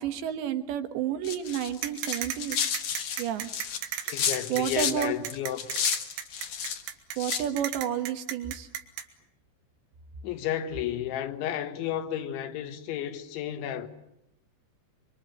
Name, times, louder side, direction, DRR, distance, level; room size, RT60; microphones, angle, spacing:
voice 1, 0.0-2.6 3.2-3.5 4.5-5.1 7.2-8.7, right 10 dB, 70° right, 3.4 m, -30 dB
sound 1, 1.2-5.0 5.3-6.8 7.2-7.5, left 8 dB, 55° left, 2.5 m, -31 dB
sound 2, 1.8-9.0, right 9 dB, 90° right, 4.1 m, -35 dB
voice 2, 4.1-5.7 10.2-13.9, left 11 dB, 75° left, 3.8 m, -32 dB
25.0 x 24.5 x 9.1 m
omnidirectional pair, 5.5 m